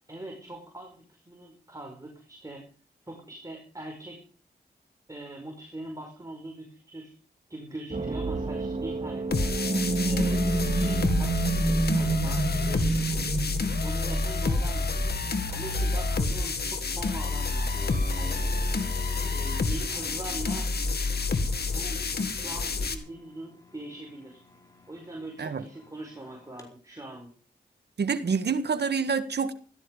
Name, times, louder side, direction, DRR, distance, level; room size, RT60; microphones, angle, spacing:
voice 1, 0.1-2.6 3.1-4.2 5.1-7.1 7.5-9.5 10.0-13.4 13.8-15.2 15.5-17.7 18.2-18.4 19.2-20.7 21.7-22.0 22.3-24.4 24.9-27.3, right 1 dB, 20° right, 1 dB, 5.3 m, -42 dB
sound 1, 7.9-15.6, right 3 dB, 40° right, 2.5 m, -29 dB
sound 2, 9.3-22.9, left 3 dB, 65° left, 2.2 m, -28 dB
sound 3, 17.3-26.7, left 1 dB, 20° left, 4.8 m, -50 dB
voice 2, 28.0-29.5, right 5 dB, 70° right, 11 dB, 1.7 m, -27 dB
16.5 x 13.5 x 5.4 m, 0.40 s
cardioid pair, 55°, 18 cm